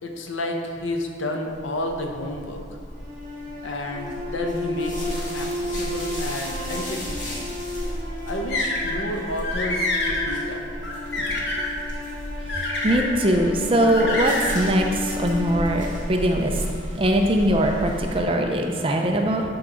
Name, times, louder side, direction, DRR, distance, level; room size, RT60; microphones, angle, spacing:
voice 1, 0.0-2.6 3.6-7.4 8.3-10.6 11.1-11.9, left 1 dB, 85° left, 3 dB, 0.9 m, -31 dB
sound 1, 1.5-18.2, equal, 40° left, 1.8 m, -35 dB
sound 2, 2.9-17.1, left 1 dB, 45° right, 1.8 m, -34 dB
sound 3, 8.5-9.0 9.4-10.3 10.8-11.7 12.5-13.1 13.8-14.6, left 2 dB, 55° left, 1.2 m, -26 dB
voice 2, 12.8-16.6 17.0-19.4, right 1 dB, 30° right, 2 dB, 0.6 m, -21 dB
11.0 x 4.8 x 3.9 m, 2.2 s
head